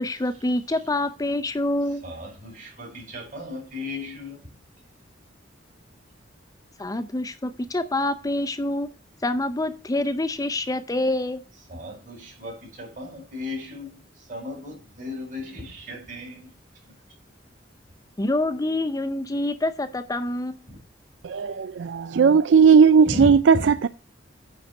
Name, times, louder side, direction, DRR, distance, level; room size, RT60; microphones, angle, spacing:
voice 1, 0.0-2.0 6.8-8.9 9.2-11.4 18.2-20.6, left 1 dB, 20° left, 0.5 m, -26 dB
voice 2, 2.0-4.5 11.7-16.6 16.9-17.0 20.7-20.8 23.1-23.6, left 2 dB, 45° right, 4.7 m, -35 dB
voice 3, 21.2-23.9, right 6 dB, 75° right, 0.4 m, -17 dB
9.5 x 4.1 x 6.4 m
head